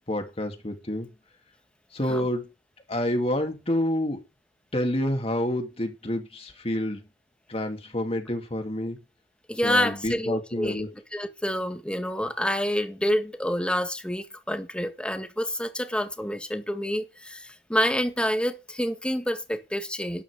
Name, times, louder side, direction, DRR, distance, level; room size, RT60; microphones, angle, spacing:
voice 1, 0.1-1.1 1.9-2.4 2.9-4.2 4.7-7.0 7.5-9.0 9.6-10.9, left 1 dB, 35° left, 2.7 m, -28 dB
voice 2, 9.5-10.8 11.1-20.2, equal, 5° left, 1.7 m, -28 dB
12.5 x 5.9 x 8.7 m
head